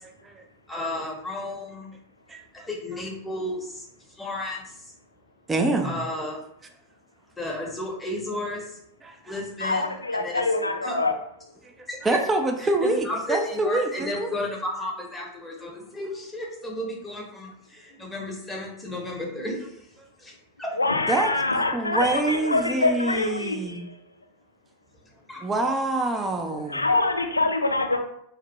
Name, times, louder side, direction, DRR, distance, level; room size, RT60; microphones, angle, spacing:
voice 1, 0.7-1.9 2.7-4.8 5.8-6.4 7.4-8.8 9.3-10.4 10.8-11.0 11.9-12.2 12.6-19.8 20.2-20.7 25.3-25.4, left 1 dB, 10° left, -2 dB, 0.8 m, -33 dB
voice 2, 2.3-2.7 5.5-6.0 9.0-9.4 11.6-14.3 21.1-23.9 25.4-26.9, right 2 dB, 15° right, 4 dB, 0.3 m, -26 dB
voice 3, 9.6-11.1 20.8-23.9 26.7-28.0, left 2 dB, 80° left, 4 dB, 0.3 m, -25 dB
2.6 x 2.1 x 2.9 m, 0.72 s
figure-of-eight pair, 90°, 0 cm